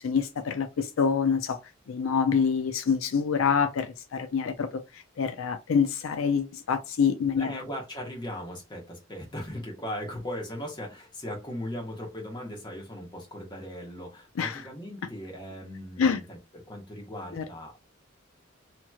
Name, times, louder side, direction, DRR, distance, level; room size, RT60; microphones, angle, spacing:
voice 1, 0.0-1.6 1.9-7.5 14.4-14.6 16.0-16.2 17.3-17.4, left 6 dB, 80° left, 0.4 m, -26 dB
voice 2, 7.4-16.4 16.7-17.8, equal, 20° left, 1.1 m, -38 dB
2.9 x 2.9 x 2.3 m
head